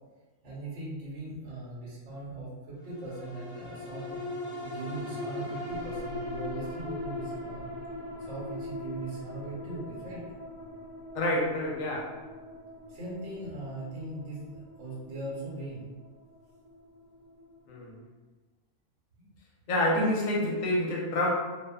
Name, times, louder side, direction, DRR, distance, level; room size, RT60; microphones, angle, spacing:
voice 1, 0.4-4.2 4.6-7.6 8.2-10.2 12.9-14.4 14.8-15.8 19.2-19.3 19.6-19.7, right 2 dB, 65° right, -6 dB, 1.0 m, -39 dB
sound 1, 2.9-17.5 18.0-18.1, left 1 dB, 40° left, 0.8 m, -40 dB
voice 2, 11.1-12.2 17.7-18.0 19.7-21.3, left 1 dB, 85° left, -2 dB, 1.0 m, -28 dB
2.4 x 2.3 x 2.2 m, 1.2 s
omnidirectional pair, 1.4 m